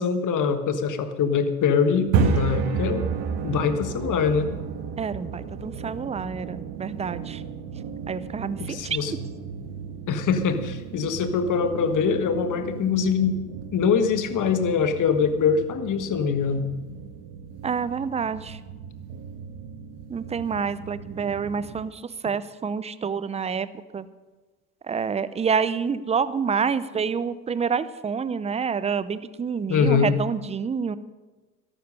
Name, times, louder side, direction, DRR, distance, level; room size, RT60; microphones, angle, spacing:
voice 1, 0.0-3.0 3.4-4.5 8.6-9.1 10.1-13.4 13.7-16.7 22.3-22.4 29.7-30.2, left 6 dB, 40° left, 8 dB, 1.6 m, -23 dB
sound 1, 1.9-21.8, right 6 dB, 55° right, 1.7 m, -33 dB
voice 2, 5.0-7.4 8.1-9.0 17.6-18.6 20.1-23.7 23.9-24.1 24.9-31.0, right 6 dB, 15° right, 15 dB, 0.6 m, -28 dB
13.5 x 12.0 x 5.6 m, 1.2 s
hypercardioid pair, 80°, 46 cm